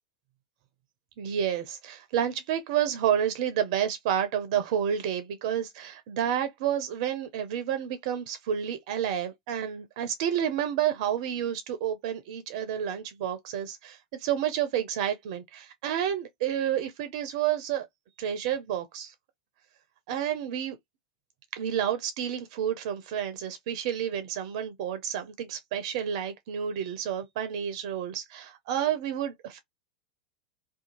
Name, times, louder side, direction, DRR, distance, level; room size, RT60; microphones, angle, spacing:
voice 1, 1.2-17.9 18.2-19.1 20.1-20.8 21.5-29.6, right 9 dB, 55° right, 0.4 m, -30 dB
2.6 x 2.3 x 2.8 m
figure-of-eight pair, 85°, 4 cm